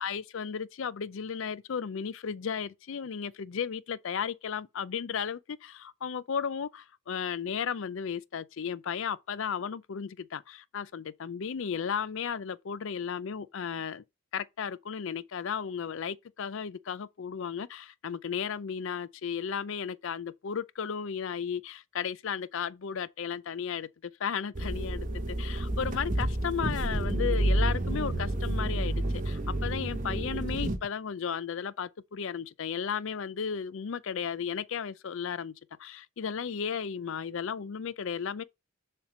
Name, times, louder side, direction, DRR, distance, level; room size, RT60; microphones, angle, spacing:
voice 1, 0.0-14.0 14.3-35.5 35.8-38.4, left 7 dB, 60° left, 0.4 m, -34 dB
sound 1, 24.6-30.8, right 1 dB, 35° right, 0.9 m, -29 dB
7.1 x 3.3 x 5.9 m
head